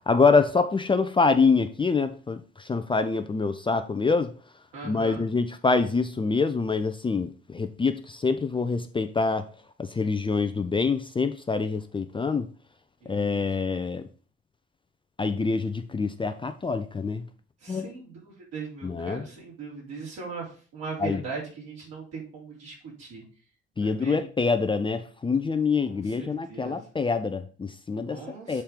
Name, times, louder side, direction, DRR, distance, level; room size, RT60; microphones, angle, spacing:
voice 1, 0.1-4.3 4.8-9.5 9.8-12.5 13.1-14.0 15.2-17.2 17.7-17.9 18.8-19.3 21.0-21.2 23.8-28.2 28.5-28.6, left 4 dB, 15° left, 0.6 m, -25 dB
voice 2, 4.7-5.3 13.0-13.5 17.6-23.2 23.8-24.2 25.8-26.9 28.1-28.6, right 4 dB, 60° right, 3.8 m, -39 dB
7.3 x 4.3 x 5.2 m
figure-of-eight pair, 50°, 30 cm